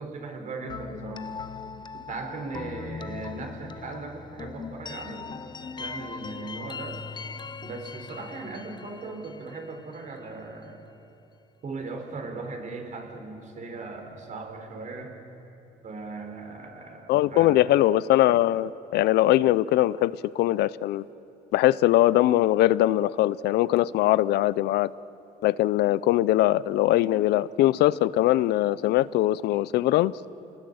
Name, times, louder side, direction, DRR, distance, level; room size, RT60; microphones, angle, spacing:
voice 1, 0.0-1.3 1.9-7.0 7.6-10.8 11.6-15.2 15.8-17.6, right 3 dB, 45° right, 4 dB, 4.1 m, -38 dB
sound 1, 0.7-10.5, left 5 dB, 25° left, 0.7 m, -40 dB
voice 2, 17.1-21.0 21.5-24.9 25.4-30.1, left 15 dB, 75° left, 18 dB, 0.6 m, -21 dB
29.0 x 19.5 x 7.9 m, 2.8 s
cardioid pair, 110°, 17 cm